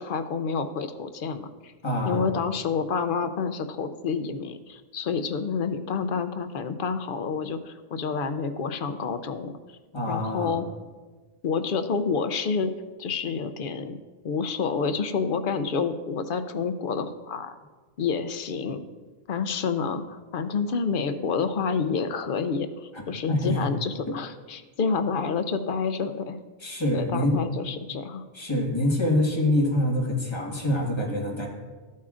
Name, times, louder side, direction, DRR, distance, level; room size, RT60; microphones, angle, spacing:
voice 1, 0.0-1.7 2.0-9.5 10.1-10.6 11.4-12.7 13.0-14.0 14.2-17.6 18.0-18.8 19.3-26.4 26.9-28.2, left 5 dB, 60° left, 9 dB, 0.7 m, -28 dB
voice 2, 1.8-2.3 9.9-10.6 23.3-23.7 24.1-24.2 26.6-27.4 28.3-31.5, left 1 dB, 25° left, -2 dB, 1.6 m, -25 dB
13.5 x 8.4 x 2.5 m, 1.3 s
omnidirectional pair, 1.1 m